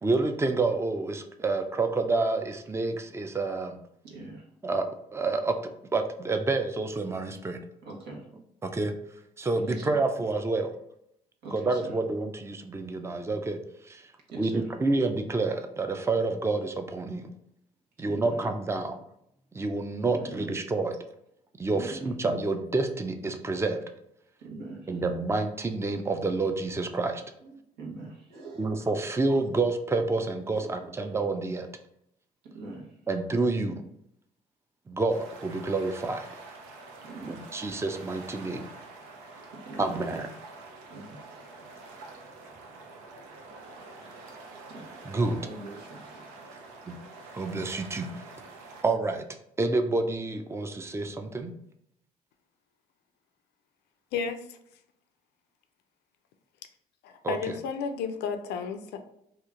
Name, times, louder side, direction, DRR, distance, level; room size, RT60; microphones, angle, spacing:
voice 1, 0.0-3.8 4.6-5.5 5.9-7.6 8.6-8.9 9.4-10.7 11.5-13.6 13.8-14.1 14.3-17.3 18.0-19.0 19.5-21.0 21.6-23.8 24.9-27.2 28.6-31.7 33.1-33.8 34.9-36.3 37.3-38.7 39.8-40.3 45.0-45.4 46.9-47.0 47.3-48.1 48.8-49.2 49.6-51.5 57.2-57.5, right 3 dB, 15° right, 6 dB, 0.5 m, -28 dB
voice 2, 4.0-4.5 7.8-8.2 9.6-10.0 11.4-11.9 14.3-14.7 18.0-18.4 20.0-20.4 21.7-22.1 24.4-25.0 27.6-28.8 30.5-30.9 32.4-32.9 37.0-37.5 39.5-40.0 40.9-41.7 41.9-42.1 44.7-44.9 45.4-46.2, right 2 dB, 70° right, -2 dB, 1.1 m, -43 dB
sound 1, 35.1-48.8, right 3 dB, 85° right, 0.5 m, -47 dB
voice 3, 54.1-54.6 57.0-59.1, left 6 dB, 70° left, 8 dB, 0.5 m, -33 dB
2.9 x 2.4 x 3.6 m, 0.76 s
hypercardioid pair, 55°, 18 cm